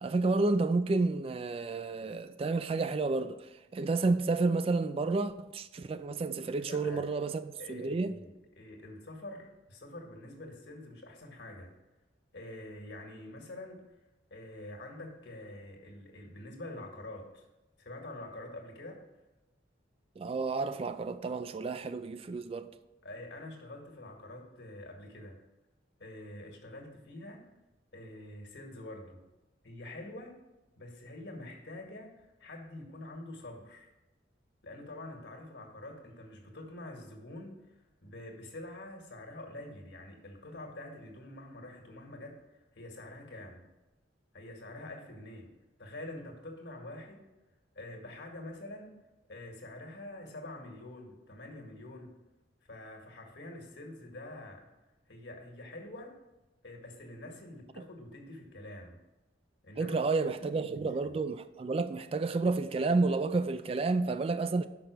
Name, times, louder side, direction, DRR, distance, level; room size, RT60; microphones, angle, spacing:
voice 1, 0.0-3.4 3.7-8.2 20.2-22.7 59.8-64.7, right 3 dB, 30° right, 0.3 m, -30 dB
voice 2, 6.3-7.0 7.6-11.7 12.3-13.8 14.3-17.5 17.8-19.0 23.0-25.4 26.0-27.4 27.9-29.2 29.6-30.4 30.8-33.9 34.6-42.4 42.7-43.6 44.3-45.5 45.8-47.2 47.7-48.9 49.3-52.1 52.6-54.7 55.1-56.2 56.6-59.0 59.6-61.2, left 1 dB, 70° left, 1.8 m, -46 dB
6.0 x 5.6 x 6.3 m
head